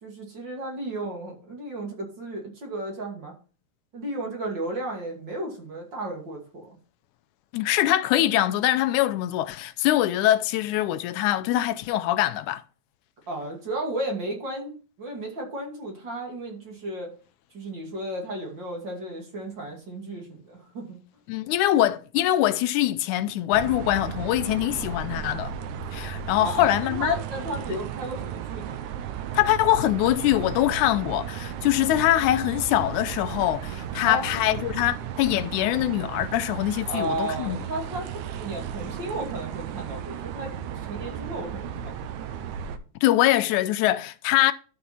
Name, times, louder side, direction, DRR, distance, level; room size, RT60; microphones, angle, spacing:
voice 1, 0.0-3.3 3.9-6.8 13.3-17.1 17.5-21.0 26.4-28.8 34.0-34.2 36.9-40.5 40.9-42.1, right 1 dB, 40° right, 2.7 m, -34 dB
voice 2, 7.5-12.6 21.3-25.5 25.9-27.2 29.3-37.6 43.0-44.5, left 14 dB, 85° left, 2.1 m, -23 dB
sound 1, 23.5-42.8, right 9 dB, 90° right, 2.2 m, -35 dB
12.0 x 5.7 x 4.3 m
omnidirectional pair, 3.4 m